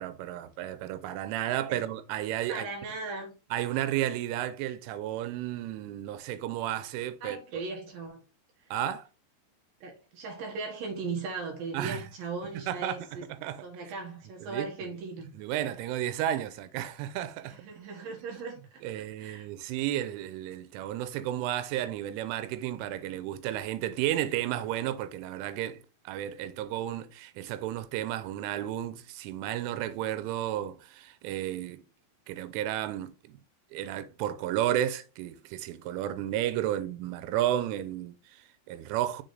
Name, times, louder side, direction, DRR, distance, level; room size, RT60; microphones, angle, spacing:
voice 1, 0.0-2.7 3.5-7.4 8.7-9.1 11.7-12.0 12.5-13.1 13.4-13.6 14.4-14.9 15.3-17.6 18.8-31.8 32.3-33.4 33.7-39.2, right 12 dB, 90° right, 3.2 m, -32 dB
voice 2, 2.5-3.3 7.2-8.2 9.8-13.3 13.6-15.3 17.4-18.8 19.2-19.5, right 4 dB, 65° right, 2.5 m, -38 dB
6.8 x 4.1 x 3.9 m
omnidirectional pair, 5.5 m